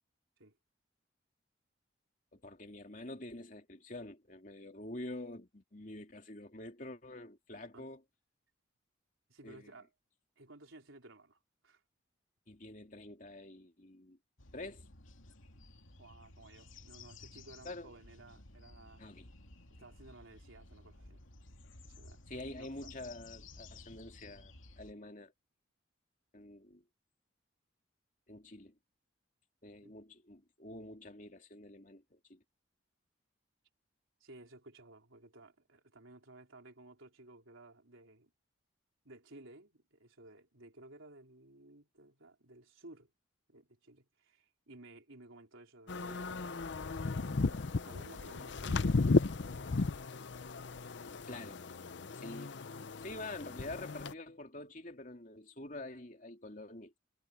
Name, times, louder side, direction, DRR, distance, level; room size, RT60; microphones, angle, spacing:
voice 1, 2.3-8.0 9.4-9.7 12.5-14.2 14.5-14.9 17.6-17.9 19.0-19.3 22.3-25.3 26.3-26.8 28.3-28.8 29.6-32.4 51.3-51.6 52.1-52.6 53.0-56.9, left 2 dB, 40° left, 3.0 m, -47 dB
voice 2, 9.3-9.9 10.4-11.8 16.0-19.0 19.7-21.2 21.8-22.9 29.8-30.0 34.2-38.3 39.0-43.1 43.5-46.5 46.8-49.3, right 2 dB, 85° right, 4.3 m, -56 dB
sound 1, 14.4-24.9, left 2 dB, 85° left, 2.6 m, -55 dB
sound 2, 45.9-54.1, left 3 dB, 65° left, 0.6 m, -35 dB
head